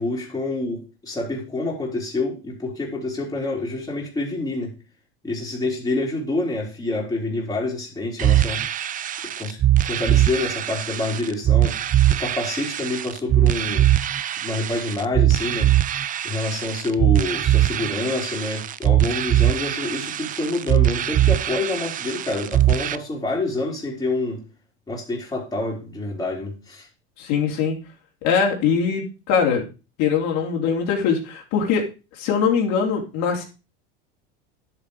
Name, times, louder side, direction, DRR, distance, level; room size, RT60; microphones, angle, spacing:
voice 1, 0.0-4.7 5.2-8.6 9.4-11.8 12.1-13.9 14.4-15.7 16.2-24.4 24.9-26.9, left 2 dB, 10° left, 4.1 m, -27 dB
sound 1, 8.2-22.9, right 13 dB, 25° right, 0.6 m, -21 dB
voice 2, 27.2-27.8 28.2-29.6 30.0-31.9 32.2-33.4, left 6 dB, 55° left, 3.5 m, -22 dB
11.0 x 7.5 x 4.9 m
supercardioid pair, 125°, 33 cm